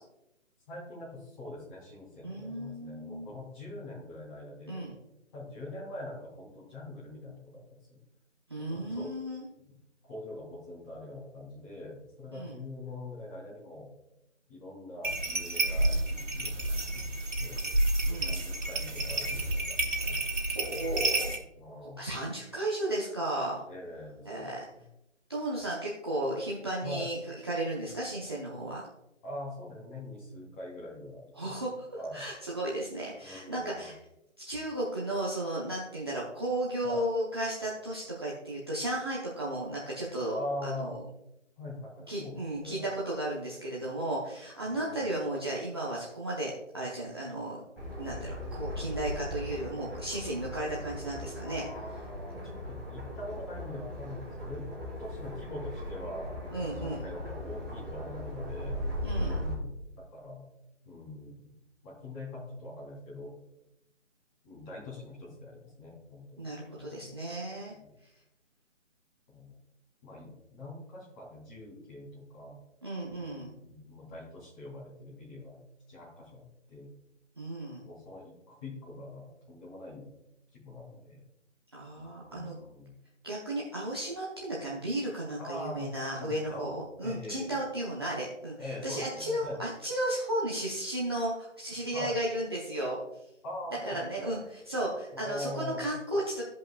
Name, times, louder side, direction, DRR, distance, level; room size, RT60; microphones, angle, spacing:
voice 1, 0.7-4.8 5.3-7.6 7.9-8.0 8.7-9.1 10.1-13.9 14.5-17.6 18.1-19.7 20.0-20.2 21.6-22.0 23.7-24.5 26.8-27.1 29.2-31.5 32.0-32.2 33.2-33.9 36.8-37.0 40.3-40.9 41.6-42.8 44.7-45.2 51.4-54.7 55.0-56.4 56.8-59.7 60.1-60.4 60.8-61.4 61.8-63.3 64.4-66.5 66.7-67.1 67.7-67.9 69.3-69.5 70.0-72.6 73.0-75.6 75.9-76.9 77.8-80.1 80.5-81.2 81.9-83.0 85.4-87.6 88.6-89.6 91.9-92.1 93.4-94.4 95.1-95.8, left 1 dB, 20° left, -6 dB, 3.0 m, -43 dB
voice 2, 2.2-3.3 4.7-4.9 8.5-9.4 12.3-12.5 18.1-18.4 20.4-21.3 22.0-23.6 24.3-24.7 25.3-27.2 27.4-28.9 31.3-31.9 32.1-33.9 34.4-40.3 40.6-41.0 42.1-47.6 48.0-51.7 56.5-57.0 59.0-59.4 66.4-67.7 72.8-73.5 77.4-77.8 81.7-82.6 83.2-93.0 93.9-96.4, right 1 dB, 20° right, -6 dB, 0.7 m, -34 dB
sound 1, 15.0-21.4, right 2 dB, 80° right, 2.2 m, -30 dB
sound 2, 47.8-59.5, left 1 dB, 5° left, 1.8 m, -38 dB
15.0 x 5.2 x 2.3 m, 0.86 s
hypercardioid pair, 170°, 37 cm